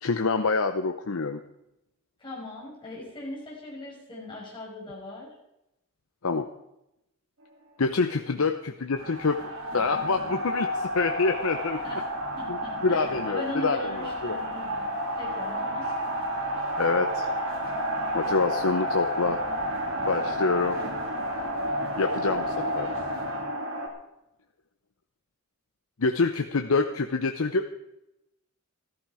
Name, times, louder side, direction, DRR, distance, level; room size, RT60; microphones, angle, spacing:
voice 1, 0.0-1.4 6.2-6.5 7.8-9.4 9.7-11.8 12.5-14.4 16.8-17.3 18.1-19.4 20.0-20.8 22.0-22.9 26.0-27.7, left 4 dB, 75° left, 7 dB, 0.8 m, -26 dB
voice 2, 2.2-5.3 8.3-8.4 11.8-12.1 12.4-14.7 15.2-15.9, left 1 dB, 20° left, -6 dB, 5.7 m, -38 dB
sound 1, 8.9-23.9, equal, 70° right, 3.4 m, -31 dB
14.5 x 14.0 x 4.9 m, 0.88 s
head